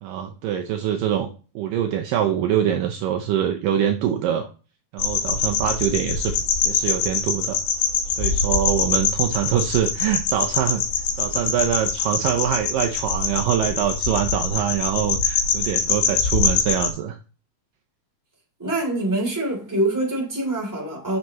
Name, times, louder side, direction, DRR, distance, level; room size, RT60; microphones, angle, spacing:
voice 1, 0.0-1.3 1.6-4.5 4.9-6.4 6.6-7.6 8.2-10.8 11.2-17.2, right 9 dB, 75° right, 2.2 m, -24 dB
sound 1, 5.0-16.9, left 5 dB, 75° left, 3.1 m, -24 dB
voice 2, 18.6-21.2, right 1 dB, 5° right, 2.3 m, -25 dB
7.9 x 6.6 x 3.0 m
omnidirectional pair, 4.4 m